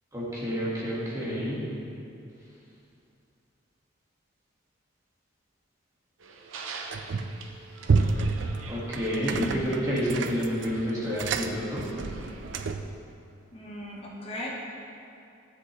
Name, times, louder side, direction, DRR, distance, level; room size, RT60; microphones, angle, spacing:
voice 1, 0.1-1.6 8.7-11.9, equal, 15° right, -7 dB, 1.7 m, -29 dB
sound 1, 6.2-12.6, right 4 dB, 80° right, 0.8 m, -45 dB
sound 2, 6.9-7.4 7.8-13.0, right 4 dB, 60° right, 0.4 m, -29 dB
voice 2, 13.5-14.5, left 1 dB, 25° left, -3 dB, 1.2 m, -38 dB
10.0 x 7.9 x 3.2 m, 2.6 s
head